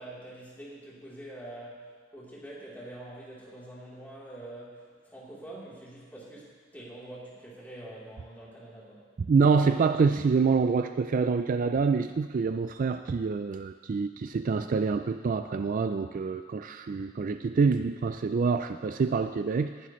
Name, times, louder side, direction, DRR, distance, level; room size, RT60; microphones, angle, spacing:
voice 1, 0.0-9.1, right 1 dB, 10° left, -7 dB, 3.4 m, -45 dB
voice 2, 9.3-19.9, right 5 dB, 40° right, 9 dB, 0.3 m, -26 dB
19.0 x 11.5 x 3.1 m, 1.6 s
head